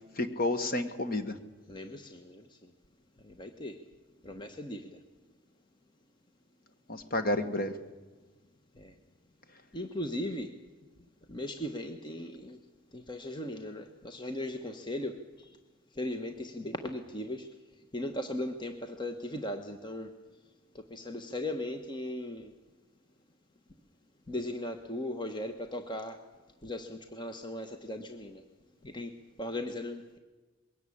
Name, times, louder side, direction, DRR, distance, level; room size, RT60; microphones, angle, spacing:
voice 1, 0.2-1.3 6.9-7.7, left 1 dB, 45° left, 9 dB, 1.6 m, -30 dB
voice 2, 1.7-2.7 3.2-3.8 4.2-5.0 8.8-9.0 9.7-10.5 11.3-12.6 12.9-15.6 15.9-17.5 17.9-20.1 20.9-22.5 24.3-26.2 26.6-28.4 28.8-29.1 29.4-30.2, left 1 dB, 20° left, 6 dB, 1.1 m, -38 dB
22.0 x 17.5 x 8.6 m, 1.2 s
head